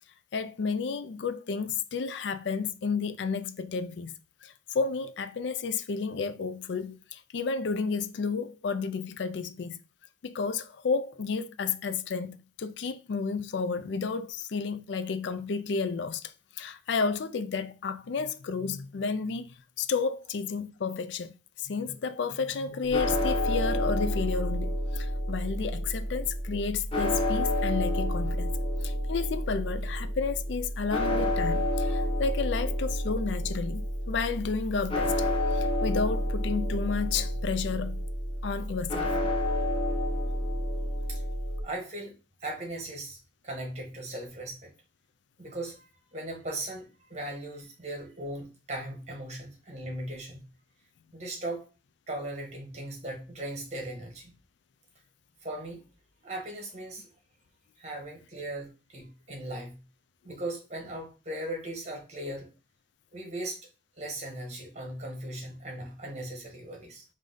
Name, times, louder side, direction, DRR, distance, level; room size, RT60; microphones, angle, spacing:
voice 1, 0.3-4.1 4.4-9.8 10.2-16.2 16.6-19.5 19.8-21.3 21.6-28.6 28.8-35.2 35.5-38.0 38.4-39.1, left 5 dB, 75° left, 0.4 m, -31 dB
sound 1, 22.8-41.6, left 1 dB, 30° left, 0.9 m, -29 dB
voice 2, 41.6-42.1 42.4-43.2 43.4-44.7 45.4-50.4 51.1-51.7 52.1-54.3 55.4-55.8 56.2-57.1 57.8-59.8 60.2-62.5 63.1-63.6 64.0-67.0, right 1 dB, 35° right, 1.4 m, -38 dB
4.9 x 2.7 x 3.8 m
head